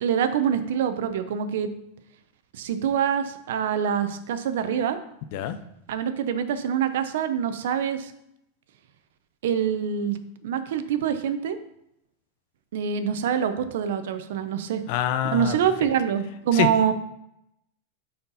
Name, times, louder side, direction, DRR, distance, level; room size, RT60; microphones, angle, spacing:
voice 1, 0.0-1.7 2.5-5.0 5.9-8.1 9.4-10.2 10.4-11.6 12.7-14.8 15.2-16.9, right 8 dB, 75° right, 10 dB, 0.7 m, -25 dB
voice 2, 14.9-15.6 16.5-16.9, left 10 dB, 50° left, 11 dB, 0.6 m, -26 dB
9.4 x 4.4 x 4.0 m, 0.79 s
supercardioid pair, 155°, 0 cm